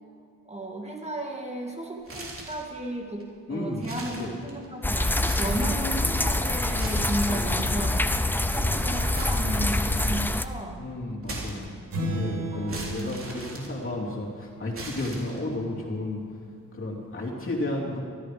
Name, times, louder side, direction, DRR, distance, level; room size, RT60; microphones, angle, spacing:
voice 1, 0.5-3.2 3.5-7.9 8.5-10.9 12.5-13.2, right 1 dB, 20° right, -1 dB, 2.0 m, -34 dB
sound 1, 2.0-2.7 3.2-3.3 3.7-4.8 5.1-5.8 6.6-7.7 9.1-10.2 11.2-12.0 12.7-14.2 14.7-15.6, right 2 dB, 40° right, 3.2 m, -39 dB
voice 2, 3.5-4.3 7.3-7.8 10.8-16.2 16.7-18.0, left 1 dB, 40° left, -3 dB, 3.0 m, -33 dB
sound 2, 4.8-10.4, left 1 dB, 5° left, 0.5 m, -25 dB
sound 3, 11.9-14.6, right 1 dB, 85° right, 3.2 m, -33 dB
14.0 x 13.0 x 5.1 m, 2.1 s
cardioid pair, 105°, 33 cm